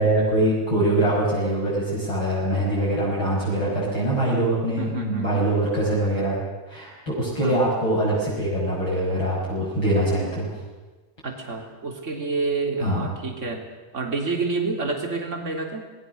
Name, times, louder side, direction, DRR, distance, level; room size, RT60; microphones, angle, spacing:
voice 1, 0.0-6.4 6.7-10.5 12.8-13.1, right 1 dB, 35° left, -6 dB, 6.5 m, -23 dB
voice 2, 4.8-5.5 7.4-7.7 11.2-13.7 13.9-15.8, right 3 dB, 20° right, 1 dB, 3.4 m, -28 dB
27.5 x 20.0 x 6.6 m, 1.2 s
omnidirectional pair, 3.8 m